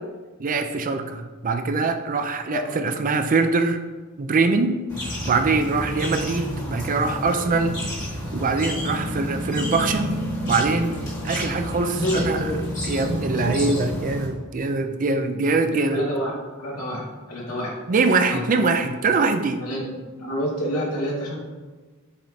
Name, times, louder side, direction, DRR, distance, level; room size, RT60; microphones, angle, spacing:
voice 1, 0.4-3.8 4.2-4.8 5.2-7.8 8.3-10.1 10.4-11.0 11.2-12.4 12.8-16.0 17.9-19.6, right 3 dB, 35° right, 7 dB, 0.4 m, -23 dB
sound 1, 4.9-14.3, left 1 dB, 20° left, 1.7 m, -30 dB
voice 2, 11.9-12.6 12.9-13.8 15.7-16.3 16.6-17.7 18.3-18.4 19.6-21.3, equal, 90° left, -4 dB, 2.0 m, -28 dB
7.2 x 5.0 x 2.8 m, 1.3 s
head